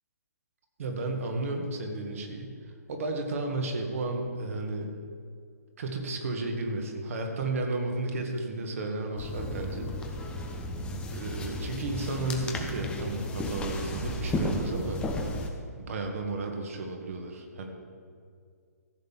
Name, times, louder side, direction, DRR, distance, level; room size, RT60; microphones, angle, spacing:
voice 1, 0.8-2.6 2.9-4.9 5.8-9.9 11.1-15.0 15.8-17.7, right 2 dB, 55° right, 3 dB, 1.9 m, -33 dB
sound 1, 9.2-15.5, left 1 dB, 10° left, 1.0 m, -34 dB
14.5 x 5.3 x 7.4 m, 2.2 s
figure-of-eight pair, 135°, 9 cm